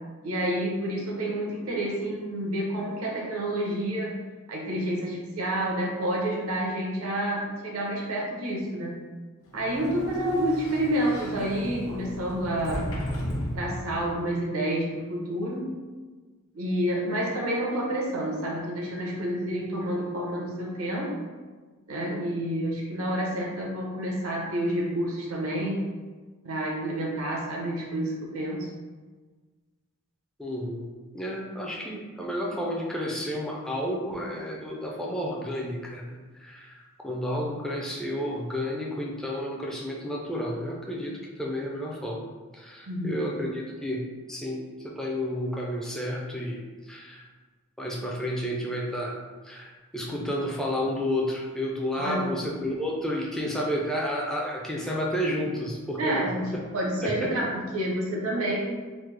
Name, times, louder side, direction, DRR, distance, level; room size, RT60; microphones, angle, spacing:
voice 1, 0.2-4.1 4.5-9.0 9.5-12.8 13.5-15.6 16.5-21.1 21.9-25.8 26.4-28.7 42.9-43.2 50.1-50.3 51.9-52.3 56.0-58.6, right 1 dB, 85° right, -2 dB, 0.7 m, -29 dB
Sliding door, 9.5-14.2, equal, 75° left, 0.6 m, -35 dB
voice 2, 30.4-42.3 42.5-44.0 44.3-46.6 46.9-47.3 47.8-49.2 49.4-56.6 57.0-57.3, equal, ahead, -3 dB, 0.3 m, -31 dB
3.1 x 2.0 x 3.2 m, 1.4 s
head